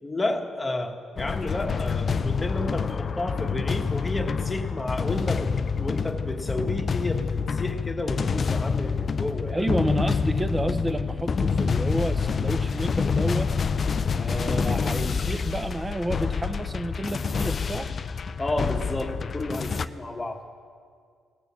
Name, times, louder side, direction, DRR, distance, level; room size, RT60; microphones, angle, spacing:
voice 1, 0.0-5.5 5.8-9.6 18.4-20.4, left 2 dB, 15° left, 3 dB, 1.3 m, -31 dB
sound 1, 1.2-19.9, left 5 dB, 45° left, 0.4 m, -27 dB
voice 2, 9.5-13.5 14.1-17.9, right 1 dB, 15° right, 9 dB, 0.8 m, -30 dB
18.0 x 6.9 x 7.1 m, 2.1 s
cardioid pair, 90°, 0 cm